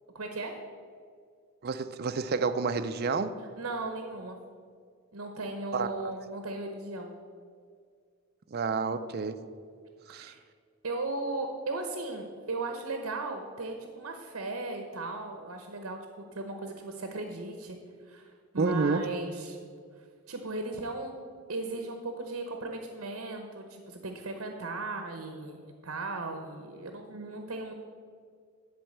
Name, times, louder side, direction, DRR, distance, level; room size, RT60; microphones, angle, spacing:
voice 1, 0.1-0.5 3.6-4.4 5.1-7.1 10.1-10.4 10.8-17.8 18.0-19.6 20.3-21.2 21.5-27.7, right 2 dB, 65° right, 5 dB, 0.9 m, -37 dB
voice 2, 1.6-3.4 5.7-6.1 8.5-9.4 10.1-10.3 18.6-19.1, right 4 dB, 45° right, 10 dB, 0.5 m, -29 dB
10.5 x 4.5 x 7.8 m, 2.1 s
head